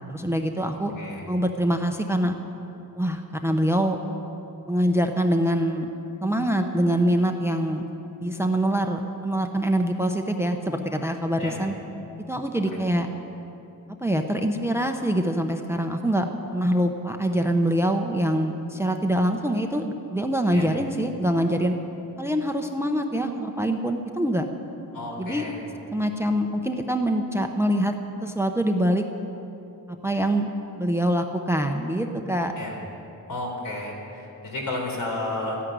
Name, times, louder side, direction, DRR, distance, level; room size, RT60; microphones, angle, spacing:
voice 1, 0.1-0.9 1.3-2.3 3.0-4.0 4.7-5.9 6.2-7.9 8.2-11.7 12.3-13.1 14.0-16.3 16.5-21.8 22.2-24.5 25.2-25.5 25.9-27.9 28.2-29.0 30.0-30.5 30.8-32.5, equal, 5° right, 5 dB, 0.7 m, -24 dB
voice 2, 24.9-25.6 32.6-32.7 33.3-35.6, left 2 dB, 65° left, -1 dB, 3.9 m, -32 dB
14.0 x 9.9 x 9.3 m, 3.0 s
wide cardioid pair, 130°, 36 cm